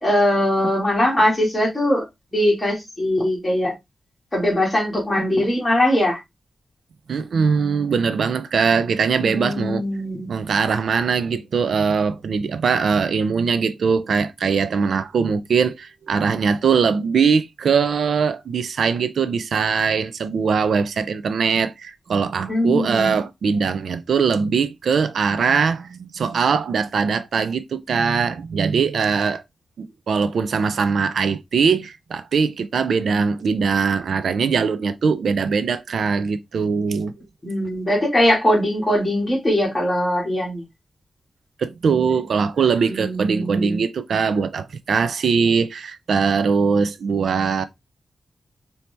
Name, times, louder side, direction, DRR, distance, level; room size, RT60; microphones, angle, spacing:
voice 1, 0.0-2.0 2.3-3.7 4.3-6.2 9.2-10.3 22.5-23.2 37.4-40.6 42.9-43.8, left 1 dB, 15° left, 1.8 m, -21 dB
voice 2, 7.1-9.8 10.3-29.4 29.8-37.1 41.6-47.6, right 5 dB, 80° right, 0.4 m, -21 dB
4.4 x 2.7 x 3.2 m
wide cardioid pair, 165°, 0 cm